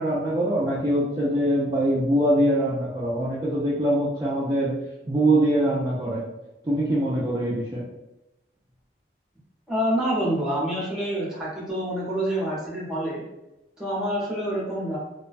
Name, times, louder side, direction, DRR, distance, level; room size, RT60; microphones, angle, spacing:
voice 1, 0.0-4.7 5.0-6.2 6.6-7.8, right 1 dB, 25° right, -7 dB, 0.3 m, -23 dB
voice 2, 9.7-13.2 13.8-15.0, equal, 5° right, -6 dB, 0.7 m, -27 dB
2.3 x 2.1 x 2.5 m, 0.95 s
head